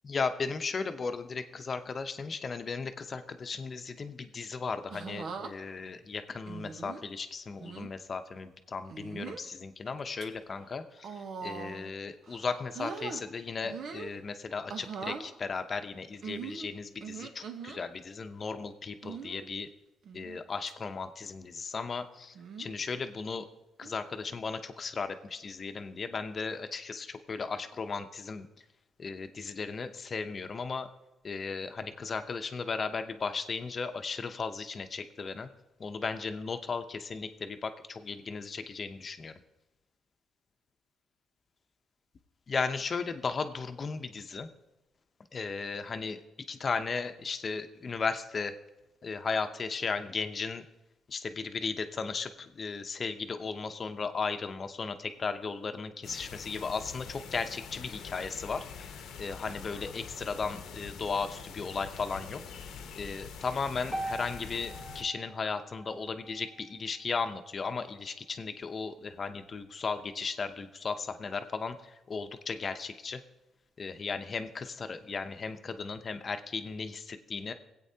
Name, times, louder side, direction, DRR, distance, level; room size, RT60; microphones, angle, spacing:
voice 1, 0.0-19.7 20.1-23.4 23.8-28.5 29.0-30.9 31.2-35.5 35.8-39.3 42.5-44.5 45.3-48.5 49.0-50.7 51.1-62.4 63.0-73.2 73.8-77.5, left 4 dB, 40° left, 9 dB, 0.7 m, -36 dB
sound 1, 4.9-5.5 6.5-7.0 7.6-7.9 8.9-9.5 10.0-10.3 11.0-11.9 12.3-13.2 13.6-14.1 14.7-15.3 16.2-17.8 19.0-19.4 20.1-20.4 20.7-20.8 22.4-22.8 23.8-24.1, right 6 dB, 65° right, 1.0 m, -41 dB
sound 2, 56.0-65.0, left 6 dB, 80° left, 0.9 m, -45 dB
sound 3, 63.9-68.1, right 1 dB, 10° right, 0.9 m, -43 dB
18.0 x 8.3 x 2.8 m, 1.0 s
cardioid pair, 90°, 0 cm